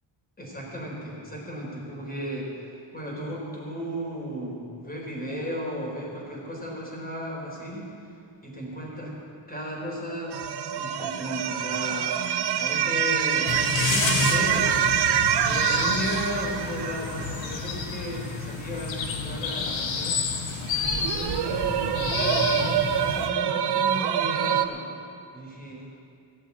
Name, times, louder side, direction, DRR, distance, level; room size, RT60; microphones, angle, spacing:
voice 1, 0.4-7.9 8.4-9.1 9.5-10.4 10.7-12.2 12.5-14.7 15.4-20.2 20.7-24.8 25.3-25.8, equal, 20° left, -3 dB, 4.2 m, -35 dB
sound 1, 10.3-18.2 20.6-24.7, right 9 dB, 55° right, 0.8 m, -26 dB
sound 2, 13.5-23.3, left 4 dB, 70° left, 1.4 m, -30 dB
16.5 x 7.6 x 8.4 m, 2.4 s
cardioid pair, 135°, 47 cm